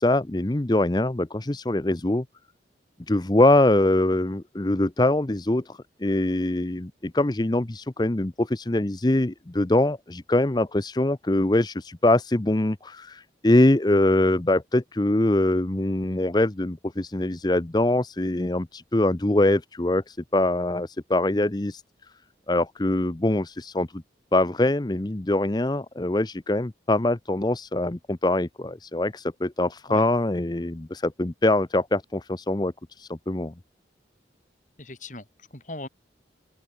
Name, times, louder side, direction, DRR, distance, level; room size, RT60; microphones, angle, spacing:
voice 1, 0.0-2.2 3.1-21.8 22.5-24.0 24.3-33.5, left 1 dB, 25° left, 0.7 m, -23 dB
voice 2, 34.8-35.9, left 2 dB, 45° left, 6.8 m, -39 dB
open air
head